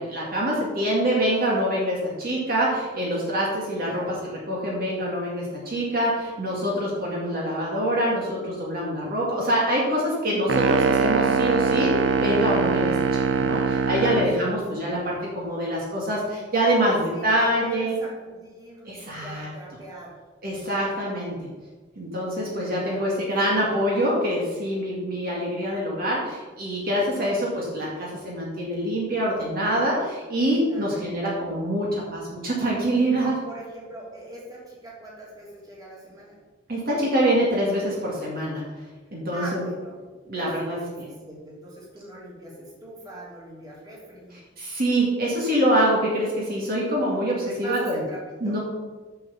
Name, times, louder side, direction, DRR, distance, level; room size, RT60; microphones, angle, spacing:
voice 1, 0.0-18.0 18.9-19.5 20.4-21.5 22.0-33.4 36.7-38.6 39.1-39.6 40.3-41.1 44.6-48.0 48.4-48.6, equal, 55° right, -4 dB, 2.3 m, -25 dB
voice 2, 3.9-4.2 14.1-14.8 17.1-20.2 22.8-23.1 30.6-31.0 33.2-36.4 39.3-40.0 40.3-44.4 47.4-48.6, right 2 dB, 20° right, -5 dB, 3.0 m, -41 dB
sound 1, 10.5-14.4, right 5 dB, 80° right, 0.7 m, -22 dB
7.8 x 6.3 x 7.3 m, 1.3 s
head